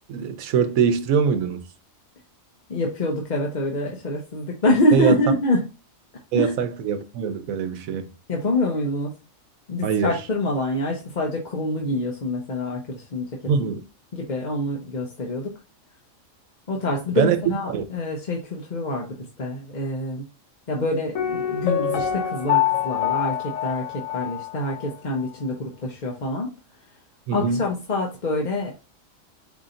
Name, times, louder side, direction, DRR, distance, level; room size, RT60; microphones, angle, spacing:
voice 1, 0.1-1.6 4.9-5.1 6.3-8.0 9.8-10.1 13.5-13.8 17.2-17.4 17.7-17.8 27.3-27.7, right 7 dB, 90° right, 1.1 m, -23 dB
voice 2, 2.7-5.6 6.3-6.5 8.3-9.1 9.7-13.5 14.1-15.5 16.7-20.2 20.7-26.5 27.3-28.7, left 1 dB, 40° left, 0.8 m, -26 dB
Piano, 21.2-24.9 25.2-25.3, left 10 dB, 75° left, 1.1 m, -25 dB
4.9 x 2.7 x 3.8 m
omnidirectional pair, 1.4 m